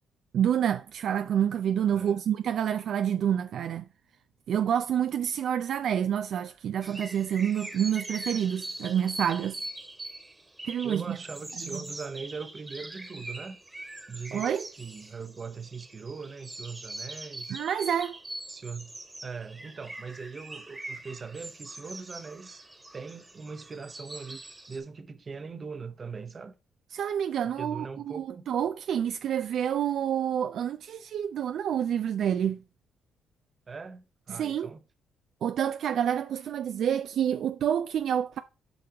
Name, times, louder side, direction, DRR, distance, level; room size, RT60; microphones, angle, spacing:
voice 1, 0.3-3.9 4.5-9.6 10.6-11.2 11.7-11.8 14.3-14.7 17.5-18.2 26.9-32.6 34.3-34.7 35.4-38.4, right 9 dB, 70° right, 0.3 m, -28 dB
sound 1, 6.8-24.8, right 2 dB, 15° right, 1.3 m, -42 dB
voice 2, 10.8-13.6 14.1-17.6 18.5-22.7 22.9-24.4 24.7-26.5 27.5-28.4 33.7-34.8, right 5 dB, 35° right, 0.8 m, -41 dB
7.7 x 5.2 x 2.9 m
cardioid pair, 90°, 0 cm